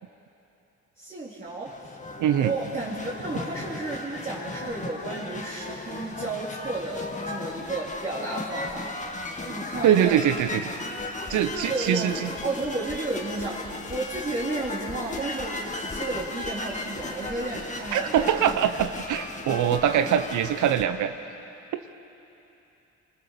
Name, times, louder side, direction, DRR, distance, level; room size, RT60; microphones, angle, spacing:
voice 1, 1.0-2.0 2.4-8.9 9.4-10.2 11.5-12.2 12.4-18.4 20.0-20.1, right 2 dB, 30° right, -8 dB, 3.9 m, -33 dB
sound 1, 1.5-20.8, left 2 dB, 25° left, 2.0 m, -36 dB
voice 2, 2.2-2.5 9.8-10.7 11.3-12.3 17.9-21.1, right 10 dB, 75° right, 9 dB, 0.9 m, -23 dB
25.5 x 23.0 x 6.8 m, 3.0 s
cardioid pair, 90°, 30 cm